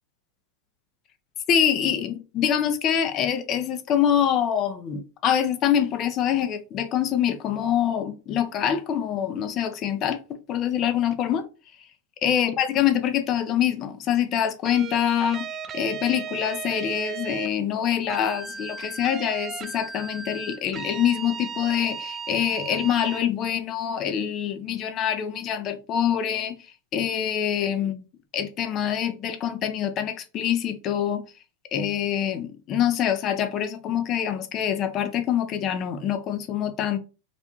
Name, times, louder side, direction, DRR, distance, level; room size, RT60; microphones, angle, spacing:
voice 1, 1.5-11.4 12.2-15.5 15.7-26.6 26.9-28.0 28.3-31.3 31.7-37.0, left 9 dB, 40° left, 0.5 m, -25 dB
sound 1, 14.7-17.5 18.1-23.2, right 6 dB, 25° right, 0.3 m, -36 dB
2.5 x 2.2 x 2.8 m
hypercardioid pair, 110°, 0 cm